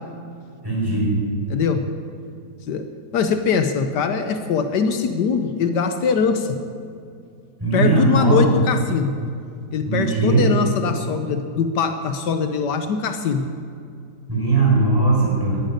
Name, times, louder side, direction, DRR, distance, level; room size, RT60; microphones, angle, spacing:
voice 1, 0.6-1.2 7.6-8.4 9.9-10.4 14.3-15.6, right 3 dB, 10° right, -4 dB, 4.6 m, -19 dB
voice 2, 1.5-1.8 2.7-2.9 3.1-6.6 7.7-9.2 9.7-13.5, left 5 dB, 75° left, 8 dB, 1.4 m, -22 dB
12.0 x 10.5 x 9.4 m, 2.4 s
omnidirectional pair, 1.9 m